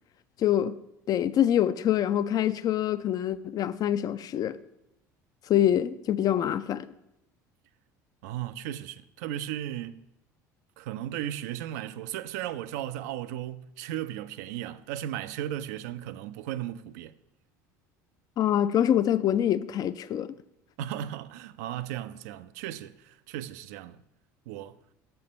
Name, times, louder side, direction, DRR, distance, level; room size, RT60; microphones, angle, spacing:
voice 1, 0.4-0.7 1.1-4.6 5.5-6.9 18.4-20.4, left 10 dB, 45° left, 0.4 m, -25 dB
voice 2, 8.2-10.0 10.8-17.1 20.8-24.0 24.5-24.7, right 12 dB, 75° right, 0.3 m, -36 dB
6.5 x 4.4 x 5.3 m
hypercardioid pair, 70°, 9 cm